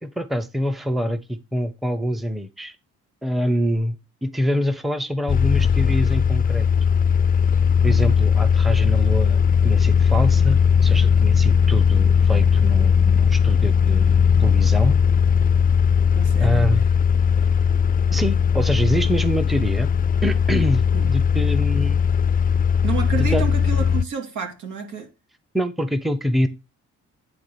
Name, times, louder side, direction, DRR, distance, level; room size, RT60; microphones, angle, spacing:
voice 1, 0.0-2.8 3.2-6.7 7.8-15.0 16.4-16.9 18.1-19.9 20.2-22.0 23.1-23.4 25.5-26.5, equal, ahead, 0.8 m, -25 dB
sound 1, 5.3-24.0, left 7 dB, 30° left, 0.5 m, -18 dB
voice 2, 16.1-16.6 20.9-21.0 22.8-25.1, right 6 dB, 75° right, 2.6 m, -30 dB
9.8 x 3.5 x 6.8 m
cardioid pair, 90°, 30 cm